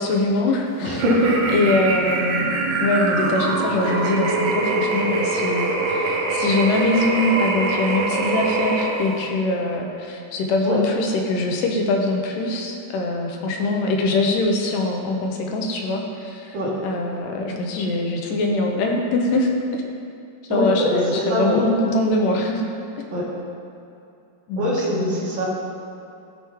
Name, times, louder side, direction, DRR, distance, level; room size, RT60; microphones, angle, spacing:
voice 1, 0.0-1.0 1.5-2.5 2.8-16.6 16.8-19.5 20.5-22.6 24.5-25.3, left 2 dB, 85° left, 1 dB, 2.3 m, -23 dB
voice 2, 0.8-1.3 10.6-10.8 16.5-16.7 20.5-21.6 23.1-23.2 24.6-25.4, equal, 55° right, -5 dB, 1.4 m, -22 dB
sound 1, 0.9-9.3, right 3 dB, 90° right, 2.6 m, -23 dB
13.5 x 4.6 x 3.0 m, 2.5 s
omnidirectional pair, 3.9 m